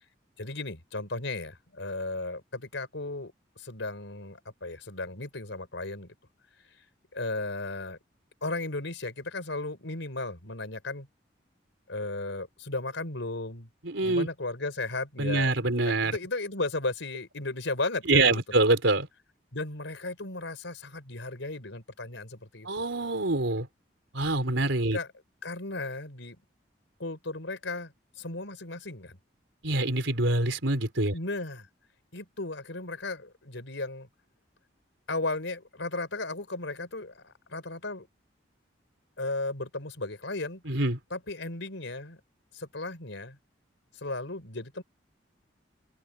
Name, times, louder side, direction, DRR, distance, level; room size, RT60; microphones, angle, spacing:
voice 1, 0.4-6.1 7.1-8.0 8.4-11.1 11.9-13.7 14.0-18.4 19.5-22.7 24.9-25.1 25.4-26.4 27.0-29.2 31.1-31.7 32.1-34.1 35.1-38.1 39.2-40.6 41.1-42.2 42.5-43.4 44.0-44.8, left 2 dB, 85° left, 4.2 m, -35 dB
voice 2, 13.8-14.3 15.2-16.2 18.1-19.1 22.6-23.7 24.1-25.0 29.6-31.1 40.7-41.0, right 2 dB, 90° right, 4.0 m, -25 dB
open air
head